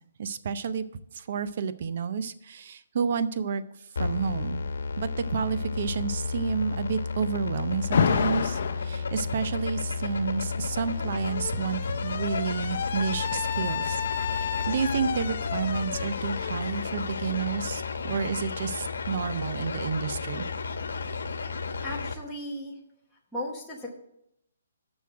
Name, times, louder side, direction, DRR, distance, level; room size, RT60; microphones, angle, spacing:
voice 1, 0.2-0.8 1.1-3.6 4.0-4.6 5.0-20.5, right 6 dB, 40° right, 13 dB, 0.5 m, -30 dB
sound 1, 4.0-22.1, left 4 dB, 85° left, 1.0 m, -32 dB
Alarm, 7.9-8.9 10.1-17.8, left 7 dB, 45° left, 0.7 m, -31 dB
voice 2, 21.8-22.8 23.3-23.9, left 1 dB, ahead, -8 dB, 1.0 m, -36 dB
6.9 x 6.2 x 7.5 m, 0.77 s
hypercardioid pair, 175°, 0 cm